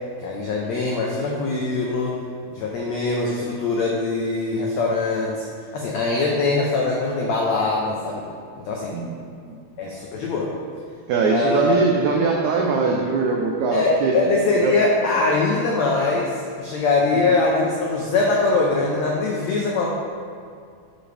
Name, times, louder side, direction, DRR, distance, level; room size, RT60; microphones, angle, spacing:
voice 1, 0.2-2.1 2.5-5.5 5.7-8.2 8.6-8.9 9.8-10.5 11.3-11.8 13.7-16.3 16.6-19.9, left 3 dB, 85° left, -2 dB, 1.5 m, -22 dB
voice 2, 11.1-14.1 14.6-14.7, right 4 dB, 90° right, -1 dB, 1.6 m, -21 dB
12.0 x 5.3 x 3.3 m, 2.2 s
omnidirectional pair, 4.2 m